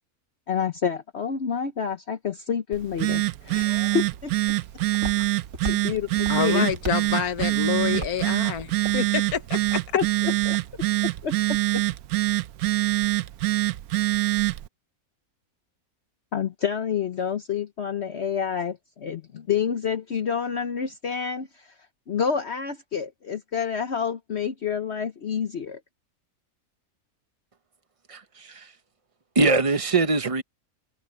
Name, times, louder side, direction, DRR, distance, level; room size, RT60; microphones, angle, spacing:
voice 1, 0.5-4.3 5.6-6.7 9.9-10.6 11.2-11.3 16.3-21.7 22.1-25.8, left 7 dB, 50° left, 1.1 m, -28 dB
Telephone, 2.7-14.7, right 18 dB, 90° right, 1.1 m, -25 dB
Walk footsteps, 4.0-9.8, right 2 dB, 60° right, 3.9 m, -39 dB
voice 2, 6.3-10.0, left 8 dB, 85° left, 1.5 m, -28 dB
voice 3, 28.1-28.6 29.3-30.4, right 3 dB, 25° right, 1.0 m, -22 dB
omnidirectional pair, 1.5 m